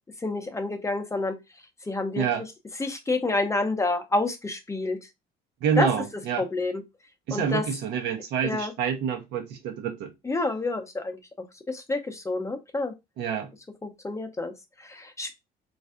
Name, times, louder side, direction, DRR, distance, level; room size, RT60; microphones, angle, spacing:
voice 1, 0.2-1.4 1.9-2.3 2.8-5.0 5.8-5.9 6.4-6.8 7.3-7.6 8.4-8.7 10.2-11.2 11.7-12.9 13.8-15.3, left 2 dB, 15° left, 0.6 m, -28 dB
voice 2, 5.6-6.5 7.3-10.1 13.2-13.5, right 7 dB, 80° right, 0.7 m, -27 dB
3.3 x 2.5 x 2.4 m
cardioid pair, 110°, 17 cm